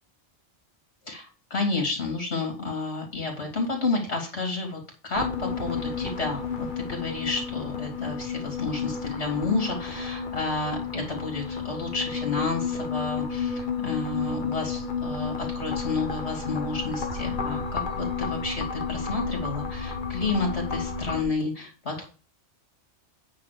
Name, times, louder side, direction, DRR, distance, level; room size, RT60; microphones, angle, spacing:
voice 1, 1.0-22.1, left 3 dB, 60° left, 2 dB, 3.4 m, -31 dB
sound 1, 5.1-21.2, left 5 dB, 45° left, 1.2 m, -31 dB
9.4 x 3.8 x 6.8 m, 0.36 s
omnidirectional pair, 1.2 m